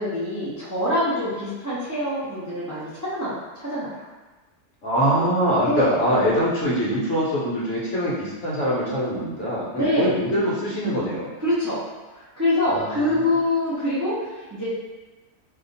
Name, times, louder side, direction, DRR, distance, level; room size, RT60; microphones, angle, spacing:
voice 1, 0.0-3.3 3.6-4.1 5.2-5.3 5.6-6.0 9.7-10.1 11.4-11.8 12.1-14.7, left 1 dB, 25° right, -10 dB, 0.4 m, -25 dB
voice 2, 4.8-11.3 12.6-13.4, equal, 55° left, -6 dB, 1.0 m, -24 dB
2.7 x 2.4 x 3.9 m, 1.2 s
omnidirectional pair, 1.6 m